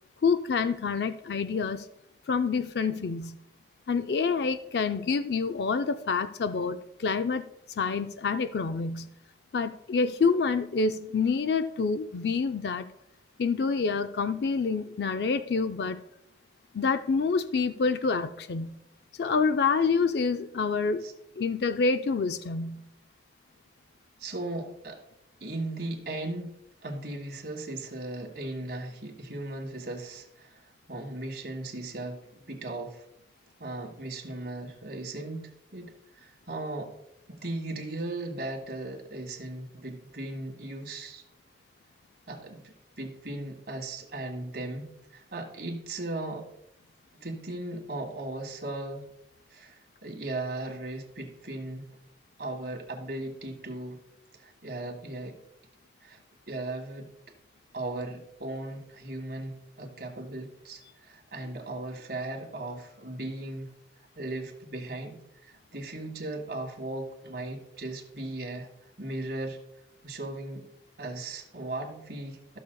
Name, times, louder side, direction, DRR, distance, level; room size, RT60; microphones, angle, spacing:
voice 1, 0.2-1.9 2.3-3.4 3.9-7.4 7.7-9.1 9.5-12.9 13.4-16.0 16.7-18.8 19.2-21.0 21.4-22.8, left 4 dB, 70° left, 9 dB, 0.4 m, -27 dB
voice 2, 24.2-25.0 25.4-26.5 26.8-33.0 33.6-36.9 37.3-41.2 42.3-46.5 47.1-49.0 49.5-51.9 52.4-54.0 54.4-55.4 56.0-56.2 56.5-57.1 57.7-63.7 64.2-68.7 69.0-69.6 70.0-70.6 71.0-72.6, right 2 dB, 65° right, 1 dB, 1.9 m, -37 dB
14.0 x 6.5 x 2.3 m, 0.78 s
head